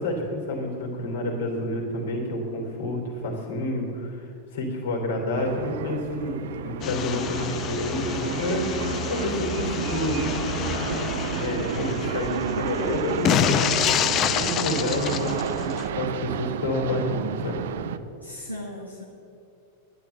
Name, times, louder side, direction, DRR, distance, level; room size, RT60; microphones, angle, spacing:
voice 1, 0.0-4.3 4.5-8.7 9.1-10.2 11.4-13.5 14.4-15.3 15.6-17.6 17.8-18.0, left 1 dB, 60° left, 1 dB, 3.2 m, -29 dB
sound 1, 5.3-18.0, right 9 dB, 55° right, 0.5 m, -31 dB
sound 2, 6.8-15.9, left 9 dB, 30° left, 0.6 m, -28 dB
voice 2, 12.3-12.7 18.2-19.0, equal, 90° left, -3 dB, 1.3 m, -37 dB
11.0 x 11.0 x 7.0 m, 2.7 s
figure-of-eight pair, 90°, 0 cm